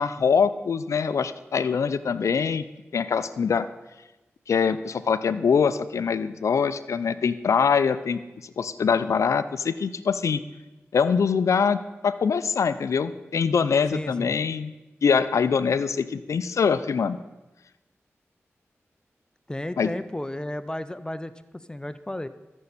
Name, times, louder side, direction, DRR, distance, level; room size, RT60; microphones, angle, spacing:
voice 1, 0.0-2.6 2.9-3.7 4.5-8.2 8.6-10.4 10.9-11.8 12.0-14.7 15.0-17.2 19.8-19.9, left 6 dB, 75° left, 13 dB, 0.4 m, -23 dB
voice 2, 13.9-14.4 19.5-22.3, left 1 dB, 15° left, 13 dB, 0.4 m, -33 dB
14.0 x 5.4 x 4.1 m, 1.0 s
cardioid pair, 45°, 5 cm